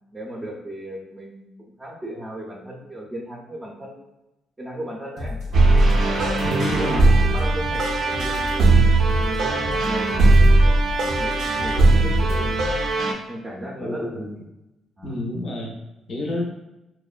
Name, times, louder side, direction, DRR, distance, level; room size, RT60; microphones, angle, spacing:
voice 1, 0.1-4.1 4.6-5.4 6.4-8.9 9.2-10.2 10.6-12.6 13.1-14.3 15.0-15.2, right 1 dB, 20° right, -4 dB, 0.5 m, -36 dB
sound 1, 5.2-12.9, left 2 dB, 90° left, 0.7 m, -32 dB
sound 2, 5.5-13.1, right 2 dB, 70° right, 0.4 m, -18 dB
voice 2, 6.4-7.1 13.8-14.3 15.0-15.7 16.1-16.4, left 1 dB, 55° left, -1 dB, 0.5 m, -28 dB
2.9 x 2.1 x 2.4 m, 0.95 s
cardioid pair, 90°, 0 cm